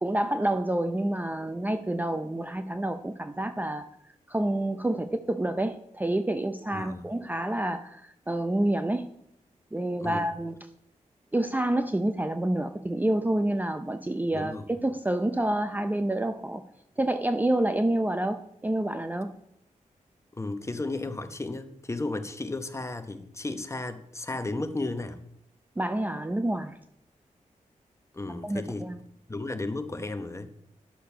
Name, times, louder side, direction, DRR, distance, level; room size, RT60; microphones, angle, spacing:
voice 1, 0.0-3.9 4.3-9.1 9.7-10.6 11.3-14.5 14.8-16.6 17.0-19.3 25.8-26.8 28.4-29.0, right 1 dB, 10° right, 0.5 m, -28 dB
voice 2, 6.7-7.1 10.0-10.3 14.3-14.7 20.3-25.2 28.1-28.9 29.3-30.5, left 2 dB, 20° left, 0.9 m, -34 dB
10.5 x 6.6 x 5.6 m
cardioid pair, 85°, 14 cm